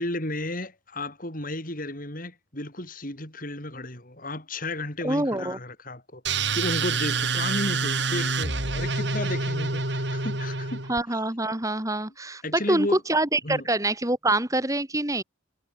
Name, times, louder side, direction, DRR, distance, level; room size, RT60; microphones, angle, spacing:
voice 1, 0.0-10.9 12.4-13.0 13.4-13.7, left 1 dB, 45° left, 6.4 m, -33 dB
voice 2, 5.0-5.6 10.9-15.2, right 2 dB, 15° right, 2.8 m, -25 dB
sound 1, 6.2-11.0, right 4 dB, 55° right, 6.6 m, -27 dB
head